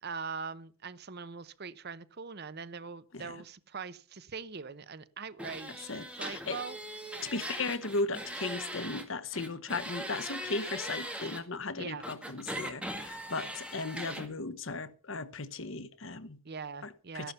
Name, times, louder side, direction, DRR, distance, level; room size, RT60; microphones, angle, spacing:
voice 1, 0.0-6.8 11.8-12.0 16.4-17.3, right 5 dB, 45° right, 0.8 m, -42 dB
sound 1, 5.4-9.0 9.3-11.4 12.0-14.3, right 1 dB, 5° right, 2.0 m, -40 dB
voice 2, 5.9-6.6 7.2-16.4 16.8-17.3, left 3 dB, 60° left, 1.0 m, -36 dB
14.0 x 11.5 x 5.6 m
head